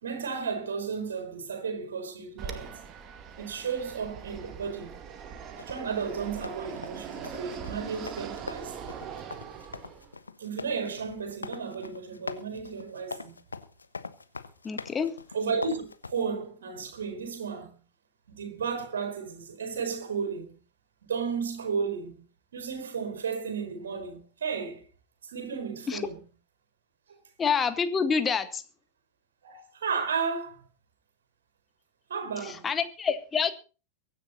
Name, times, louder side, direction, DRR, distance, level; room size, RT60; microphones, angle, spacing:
voice 1, 0.0-2.7 3.4-5.0 5.7-8.9 10.4-13.3 15.3-17.8 18.3-20.6 21.0-22.2 22.5-24.8 25.3-26.2 27.1-27.2 29.4-30.6 32.1-32.7, right 5 dB, 65° right, 4.7 m, -33 dB
Fixed-wing aircraft airplane, 2.4-10.2, right 7 dB, 35° right, 2.2 m, -41 dB
sound 1, 5.6-16.1, left 4 dB, 80° left, 1.1 m, -42 dB
voice 2, 14.6-15.1 25.9-26.0 27.4-28.6 32.6-33.5, left 6 dB, 20° left, 1.9 m, -27 dB
23.0 x 10.0 x 4.2 m
figure-of-eight pair, 90°, 0 cm